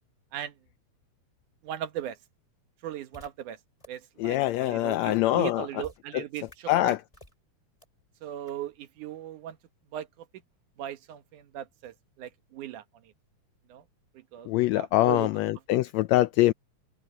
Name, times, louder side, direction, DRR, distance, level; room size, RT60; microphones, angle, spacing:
voice 1, 1.6-2.2 2.8-3.6 3.9-6.9 8.2-9.6 9.9-10.3 10.8-12.8 13.7-13.8 14.1-15.3, right 11 dB, 80° right, 2.7 m, -38 dB
sound 1, 3.1-3.3 3.8-3.9 4.5-4.6 5.2-5.3 5.8-6.0 6.5-6.6 7.1-7.3 7.8-7.9 8.5-8.6, left 1 dB, 10° left, 4.9 m, -50 dB
voice 2, 4.2-5.6 6.1-6.2 6.7-7.0 14.5-16.5, left 16 dB, 80° left, 1.6 m, -24 dB
omnidirectional pair, 3.5 m